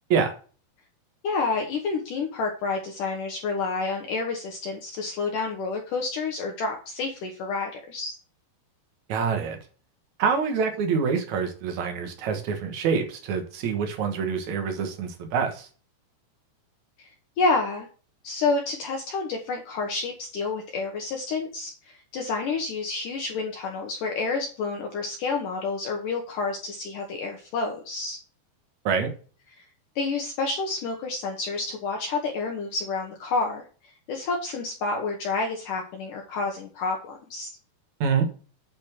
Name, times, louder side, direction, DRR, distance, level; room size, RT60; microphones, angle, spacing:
voice 1, 1.2-8.1 17.0-17.1 17.4-17.9 18.2-28.2 30.0-33.6 34.1-37.6, left 4 dB, 70° left, 1 dB, 2.1 m, -29 dB
voice 2, 9.1-9.6 10.2-15.7 28.8-29.1 38.0-38.3, right 6 dB, 60° right, 5 dB, 2.1 m, -26 dB
8.9 x 4.3 x 5.8 m, 0.39 s
omnidirectional pair, 4.9 m